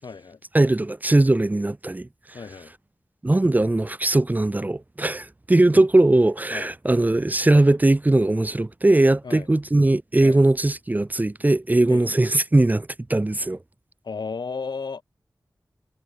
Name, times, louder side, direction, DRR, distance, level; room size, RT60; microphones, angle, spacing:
voice 1, 0.0-0.4 2.3-2.7 5.7-5.8 6.5-6.7 9.2-9.5 10.2-10.4 11.9-12.1 14.0-15.0, left 5 dB, 85° left, 2.9 m, -34 dB
voice 2, 0.5-2.1 3.2-13.6, right 2 dB, 25° right, 0.6 m, -20 dB
wide cardioid pair, 75°, 7 cm